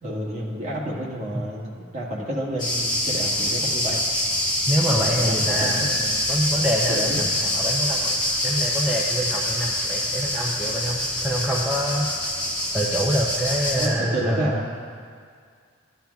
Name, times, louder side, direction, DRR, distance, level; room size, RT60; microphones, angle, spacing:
voice 1, 0.0-1.6 1.9-4.0 4.9-6.2 6.9-7.2 13.7-14.6, right 1 dB, 35° right, -5 dB, 1.7 m, -29 dB
sound 1, 2.6-13.9, left 1 dB, 20° left, 1.2 m, -25 dB
voice 2, 4.7-8.2 8.4-12.1 12.7-14.6, equal, 5° right, -4 dB, 0.5 m, -26 dB
14.0 x 10.0 x 2.3 m, 2.1 s
head